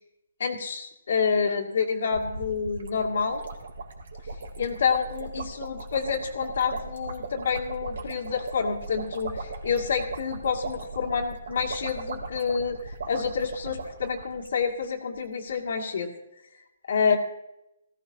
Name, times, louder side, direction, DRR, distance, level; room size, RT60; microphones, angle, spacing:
voice 1, 0.4-3.4 4.6-16.1 16.9-17.2, left 6 dB, 60° left, 0 dB, 2.4 m, -28 dB
sound 1, 2.1-14.9 15.2-15.3 15.5-15.7, right 3 dB, 70° right, 3.2 m, -38 dB
19.0 x 15.5 x 2.9 m, 0.88 s
hypercardioid pair, 165°, 0 cm